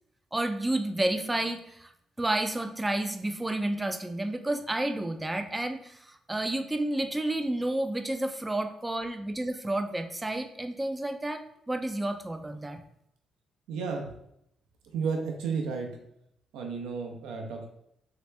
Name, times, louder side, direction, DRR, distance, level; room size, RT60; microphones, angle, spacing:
voice 1, 0.3-1.9 2.2-12.8, right 1 dB, 15° right, 7 dB, 0.4 m, -30 dB
voice 2, 13.7-14.1 14.9-15.9 16.5-17.7, right 5 dB, 90° right, 2 dB, 0.6 m, -32 dB
3.2 x 2.8 x 3.2 m, 0.76 s
cardioid pair, 90°, 0 cm